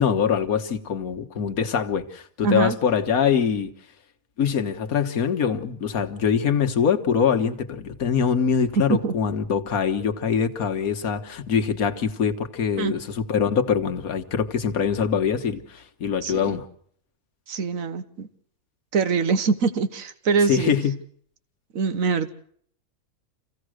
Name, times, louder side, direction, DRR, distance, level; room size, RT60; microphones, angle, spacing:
voice 1, 0.0-3.7 4.4-16.7 20.5-20.9, left 7 dB, 70° left, 1.7 m, -23 dB
voice 2, 2.4-2.8 8.7-9.1 12.8-12.9 16.2-16.6 17.5-18.3 18.9-20.7 21.7-22.3, right 5 dB, 60° right, 1.6 m, -23 dB
27.0 x 16.0 x 6.4 m
omnidirectional pair, 1.6 m